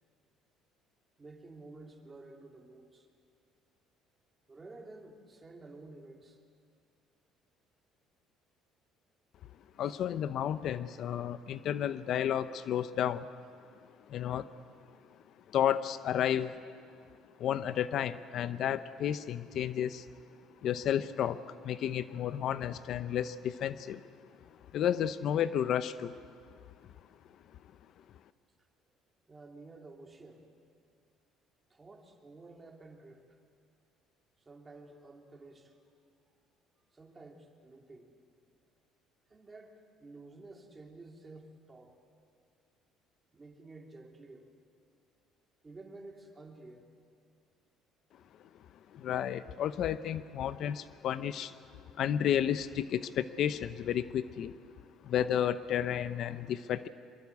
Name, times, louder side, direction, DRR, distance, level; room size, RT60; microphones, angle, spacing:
voice 1, 1.2-3.1 4.5-6.4 9.8-10.0 29.3-30.5 31.7-33.4 34.4-35.8 36.9-38.1 39.3-42.0 43.3-44.5 45.6-46.9 48.2-48.3, right 2 dB, 20° right, 2 dB, 3.0 m, -52 dB
voice 2, 9.8-13.3 14.1-14.5 15.5-16.5 17.4-20.1 20.6-24.0 24.7-26.1 48.9-51.5 52.0-54.5 55.0-56.9, left 10 dB, 60° left, 13 dB, 0.7 m, -32 dB
24.5 x 22.5 x 8.4 m, 2.3 s
cardioid pair, 115°, 0 cm